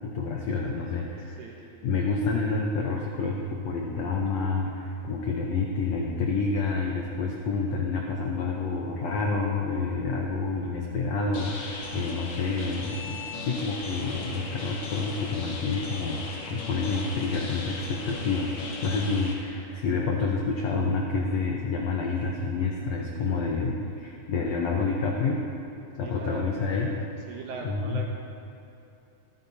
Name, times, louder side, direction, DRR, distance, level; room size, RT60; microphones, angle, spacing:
voice 1, 0.0-1.4 1.8-25.4 26.0-26.9 27.6-28.0, left 4 dB, 85° left, -1 dB, 1.4 m, -28 dB
voice 2, 1.2-1.7 26.0-26.5 27.3-28.0, right 4 dB, 70° right, 0 dB, 2.0 m, -39 dB
sound 1, 11.3-19.3, left 3 dB, 55° left, 1.9 m, -37 dB
24.5 x 9.4 x 2.8 m, 2.7 s
omnidirectional pair, 4.3 m